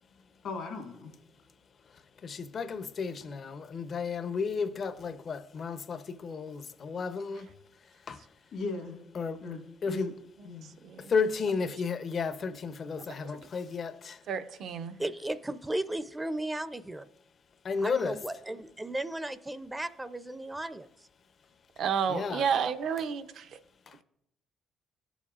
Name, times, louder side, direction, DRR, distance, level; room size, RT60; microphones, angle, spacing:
voice 1, 0.4-1.1 8.5-9.0 9.4-10.1 10.4-10.7, left 3 dB, 70° left, 1.6 m, -38 dB
voice 2, 1.9-7.5 8.1-8.3 9.1-9.4 9.8-10.1 11.0-14.2 17.6-18.2 22.1-22.5 23.9-24.0, left 5 dB, 55° left, 0.7 m, -33 dB
voice 3, 10.6-11.1 14.3-15.0 21.8-23.6, right 7 dB, 70° right, 0.6 m, -31 dB
voice 4, 15.0-17.1 17.8-20.9, right 1 dB, 15° right, 0.5 m, -35 dB
15.5 x 7.1 x 2.4 m
supercardioid pair, 65°, 0 cm